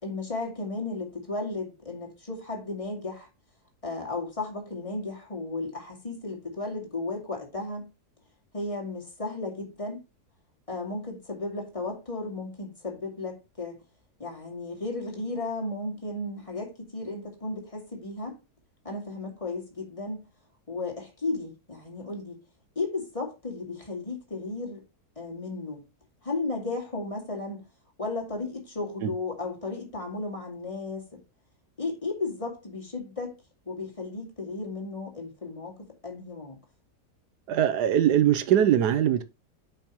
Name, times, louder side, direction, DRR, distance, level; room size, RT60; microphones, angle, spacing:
voice 1, 0.0-3.3 3.8-7.9 8.5-10.0 10.7-13.8 14.2-18.4 18.8-20.2 20.7-22.4 22.8-24.8 25.2-25.8 26.2-27.6 28.0-31.2 31.8-33.4 33.7-36.6, left 3 dB, 20° left, 2.3 m, -34 dB
voice 2, 37.5-39.2, right 10 dB, 90° right, 1.4 m, -22 dB
9.0 x 5.6 x 3.0 m
omnidirectional pair, 1.7 m